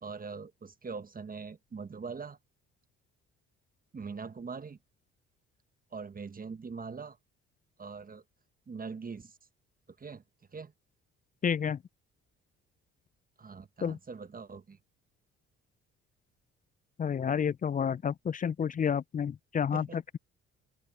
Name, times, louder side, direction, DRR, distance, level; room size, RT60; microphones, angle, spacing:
voice 1, 0.0-2.4 3.9-4.8 5.9-7.2 7.8-8.2 8.7-9.4 10.0-10.2 10.5-10.7 13.4-14.8 19.7-20.0, right 5 dB, 30° right, 1.3 m, -42 dB
voice 2, 11.4-11.8 13.8-14.0 17.0-20.2, left 7 dB, 30° left, 0.4 m, -30 dB
open air
supercardioid pair, 60°, 29 cm